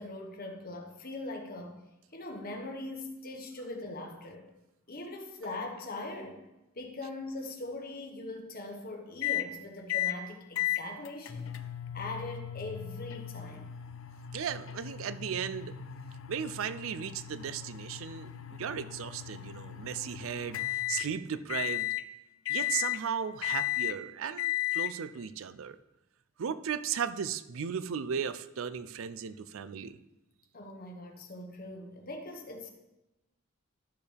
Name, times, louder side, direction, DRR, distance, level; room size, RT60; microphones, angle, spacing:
voice 1, 0.0-1.8 2.1-4.4 4.9-6.4 6.7-11.5 11.9-13.7 30.5-32.7, left 2 dB, 45° left, 2 dB, 1.3 m, -41 dB
sound 1, 9.2-9.5 9.9-10.2 10.6-21.1 21.5-22.1 22.5-23.0 23.4-24.0 24.4-24.9, left 14 dB, 70° left, 0.5 m, -35 dB
voice 2, 14.3-15.7 16.3-20.6 20.9-21.9 22.5-25.8 26.4-30.0, right 7 dB, 75° right, 14 dB, 0.4 m, -36 dB
12.0 x 6.7 x 3.4 m, 0.95 s
head